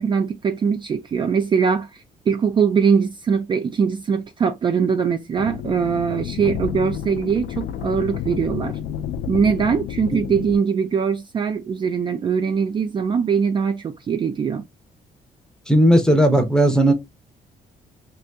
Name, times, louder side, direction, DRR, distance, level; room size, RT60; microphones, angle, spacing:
voice 1, 0.0-1.9 2.3-8.8 9.3-14.6, right 6 dB, 30° right, 0.3 m, -21 dB
sound 1, 5.4-10.6, left 10 dB, 80° left, 0.4 m, -30 dB
voice 2, 15.7-16.9, right 1 dB, 5° left, 0.6 m, -15 dB
2.6 x 2.6 x 3.3 m
cardioid pair, 135°, 16 cm